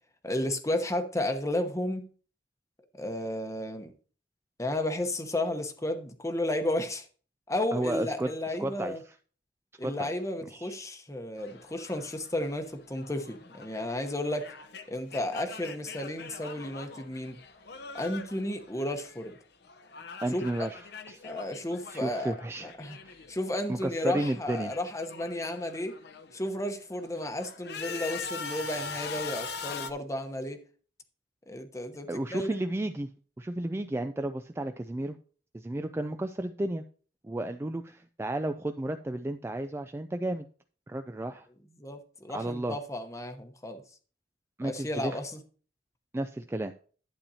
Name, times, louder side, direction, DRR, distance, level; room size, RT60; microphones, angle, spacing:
voice 1, 0.2-2.0 2.9-3.9 4.6-7.1 7.5-9.0 9.8-14.5 14.9-17.4 17.9-19.4 20.3-20.7 21.2-22.3 22.6-23.0 23.3-26.0 26.3-30.6 31.5-32.6 41.8-43.8 44.6-45.4, left 1 dB, 15° left, 0.9 m, -33 dB
voice 2, 7.7-8.9 9.8-10.1 10.4-10.8 20.2-20.8 21.1-21.3 21.9-22.7 23.1-23.2 23.7-24.7 32.1-33.1 33.4-35.2 35.5-36.8 37.2-40.5 40.9-41.5 42.3-42.8 44.6-45.2 46.1-46.7, right 1 dB, 15° right, 0.3 m, -33 dB
sound 1, 11.4-19.4 19.6-23.4 23.7-26.4 26.9-29.9, left 5 dB, 60° left, 0.8 m, -43 dB
11.5 x 8.4 x 2.8 m
head